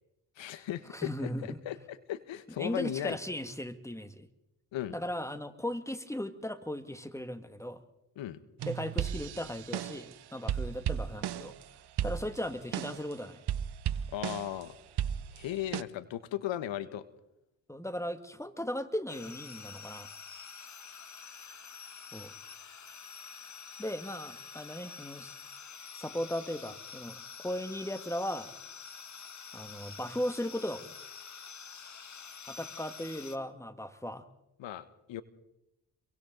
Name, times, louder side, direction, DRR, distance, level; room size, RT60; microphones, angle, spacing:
voice 1, 0.4-3.2 4.7-4.9 8.2-8.4 14.1-14.7 15.3-17.0 34.6-35.2, left 12 dB, 65° left, 14 dB, 1.4 m, -37 dB
voice 2, 0.9-1.6 2.6-4.3 4.9-7.8 8.7-11.5 12.0-13.4 17.7-20.1 22.1-22.3 23.8-25.3 25.9-28.5 29.5-30.9 32.5-34.3, left 1 dB, 5° left, 10 dB, 2.1 m, -37 dB
sound 1, 8.6-10.1 10.5-11.6 12.0-13.1 13.5-14.6 15.0-15.8, right 10 dB, 55° right, 0.9 m, -35 dB
sound 2, 19.1-33.4, left 6 dB, 35° left, 1.6 m, -47 dB
30.0 x 23.0 x 4.0 m, 0.89 s
hypercardioid pair, 45°, 48 cm